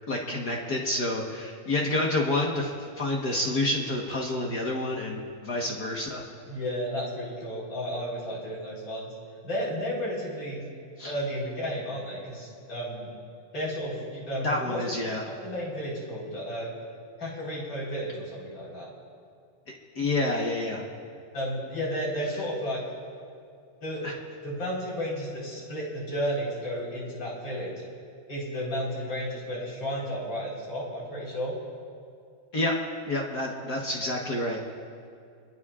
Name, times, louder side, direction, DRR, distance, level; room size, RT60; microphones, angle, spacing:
voice 1, 0.1-6.2 11.0-11.1 14.4-15.2 19.9-20.8 24.0-24.1 32.5-32.7 33.1-34.6, left 1 dB, 60° left, -1 dB, 1.0 m, -28 dB
voice 2, 6.4-9.1 9.4-10.6 11.0-13.1 13.5-14.8 15.2-16.7 17.2-18.9 21.3-22.8 23.8-24.1 24.4-27.7 28.3-31.5, equal, 35° left, -5 dB, 4.9 m, -33 dB
26.0 x 21.5 x 2.5 m, 2.4 s
omnidirectional pair, 3.9 m